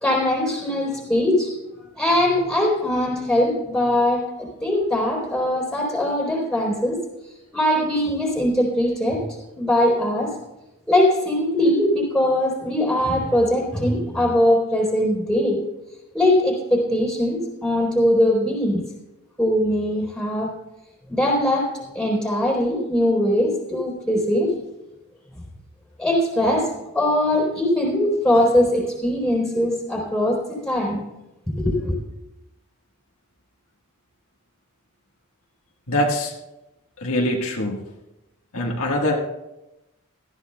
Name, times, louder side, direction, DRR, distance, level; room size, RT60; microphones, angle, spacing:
voice 1, 0.0-1.5 2.0-7.0 7.5-9.3 9.6-10.3 10.9-15.6 16.1-18.8 19.4-20.5 21.1-21.7 21.9-24.6 26.0-31.0 31.6-31.9, left 1 dB, 5° left, -2 dB, 3.8 m, -21 dB
voice 2, 35.9-36.3 37.0-37.8 38.5-39.2, left 1 dB, 80° left, 0 dB, 1.6 m, -23 dB
17.5 x 14.0 x 2.3 m, 0.96 s
head